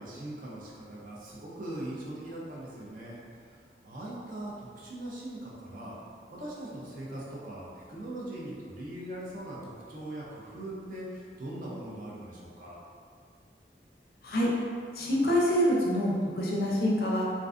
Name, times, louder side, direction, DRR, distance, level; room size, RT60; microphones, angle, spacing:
voice 1, 0.0-3.2 3.5-3.6 3.8-5.9 6.3-12.8, right 1 dB, 50° right, -5 dB, 0.5 m, -40 dB
voice 2, 14.9-17.3, equal, 55° left, -3 dB, 0.4 m, -26 dB
2.4 x 2.3 x 2.4 m, 2.1 s
head